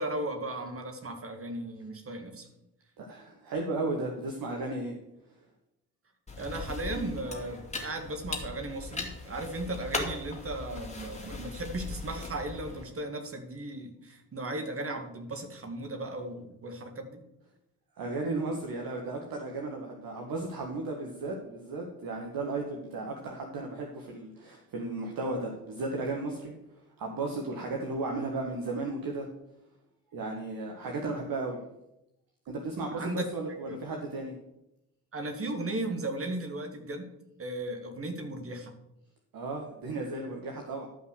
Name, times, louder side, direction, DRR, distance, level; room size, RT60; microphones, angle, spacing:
voice 1, 0.0-2.5 6.4-17.2 32.9-33.8 35.1-37.1 37.4-38.8, right 2 dB, 30° right, 5 dB, 1.9 m, -36 dB
voice 2, 3.0-5.0 18.0-26.5 27.0-29.3 30.1-31.6 32.4-34.3 39.3-40.9, right 2 dB, 45° right, 1 dB, 1.6 m, -34 dB
sound 1, 6.3-12.8, left 3 dB, 15° left, 2.6 m, -39 dB
12.0 x 5.6 x 6.3 m, 0.88 s
figure-of-eight pair, 45°, 47 cm